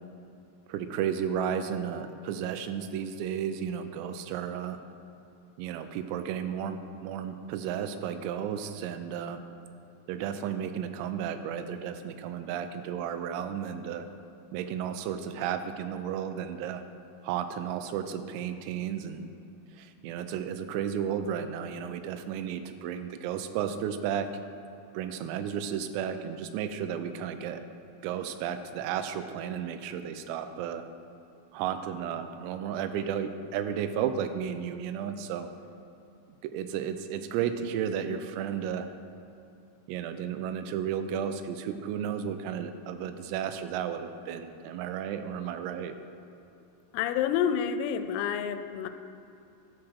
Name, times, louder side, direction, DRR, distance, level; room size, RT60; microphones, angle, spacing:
voice 1, 0.7-4.8 5.6-9.4 10.1-14.1 14.5-16.8 17.2-19.3 19.8-24.3 25.0-27.6 28.0-30.8 31.5-35.5 36.4-38.9 39.9-45.9, right 8 dB, 85° right, 9 dB, 3.3 m, -33 dB
voice 2, 46.9-48.9, left 8 dB, 85° left, 9 dB, 3.2 m, -28 dB
12.5 x 5.9 x 6.4 m, 2.8 s
omnidirectional pair, 5.9 m